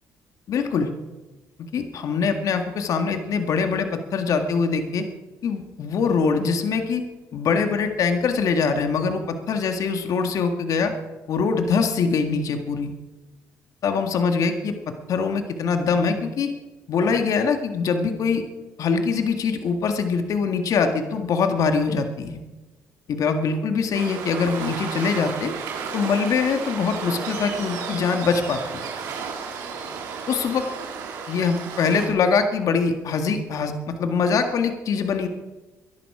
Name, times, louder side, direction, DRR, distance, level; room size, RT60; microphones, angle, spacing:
voice 1, 0.5-0.9 1.7-5.1 5.4-7.0 7.3-10.9 11.3-12.9 13.8-14.7 15.1-16.5 16.9-18.4 18.8-22.4 23.1-25.5 25.9-28.6 30.3-30.6 31.3-35.3, left 5 dB, 65° left, 6 dB, 1.9 m, -23 dB
Waves surf, 23.9-32.1, right 6 dB, 80° right, 3.6 m, -33 dB
22.0 x 11.5 x 4.9 m, 1.1 s
supercardioid pair, 70°, 6 cm